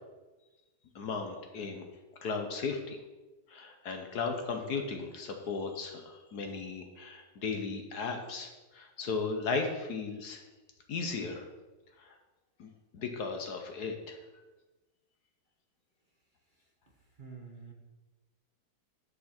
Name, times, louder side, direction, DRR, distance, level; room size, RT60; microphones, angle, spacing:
voice 1, 0.9-1.8 2.2-3.0 3.5-10.4 10.9-11.5 12.0-12.1 12.6-14.2, left 4 dB, 65° left, 4 dB, 1.5 m, -36 dB
voice 2, 17.2-17.7, right 5 dB, 30° right, -1 dB, 1.2 m, -47 dB
9.5 x 6.9 x 4.4 m, 1.1 s
omnidirectional pair, 1.9 m